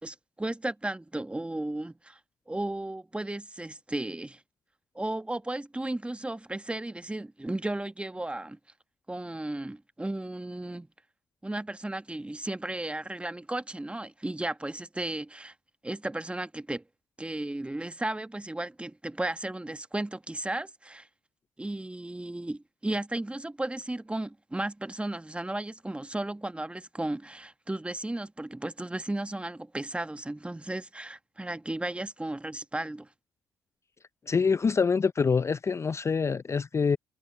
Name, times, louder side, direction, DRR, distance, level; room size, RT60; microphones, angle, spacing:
voice 1, 0.0-2.2 2.5-4.4 4.9-8.6 9.1-10.9 11.4-15.5 15.8-16.8 17.2-21.1 21.6-33.1, right 1 dB, 15° right, 1.5 m, -34 dB
voice 2, 34.3-37.0, left 5 dB, 30° left, 0.5 m, -25 dB
hypercardioid pair, 45°, 9 cm